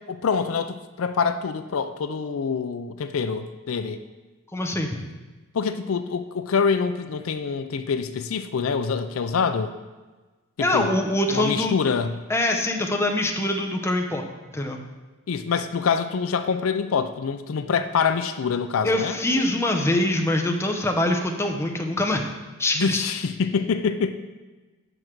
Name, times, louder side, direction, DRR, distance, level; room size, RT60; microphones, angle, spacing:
voice 1, 0.1-4.0 5.5-9.7 10.6-11.0 11.3-12.1 15.3-19.2 22.8-24.1, left 5 dB, 75° left, 10 dB, 0.4 m, -25 dB
voice 2, 4.5-5.0 10.6-11.8 12.3-14.2 14.5-14.8 18.8-22.2 22.6-23.0, left 1 dB, 10° left, 3 dB, 0.7 m, -24 dB
7.9 x 6.3 x 4.6 m, 1.2 s
head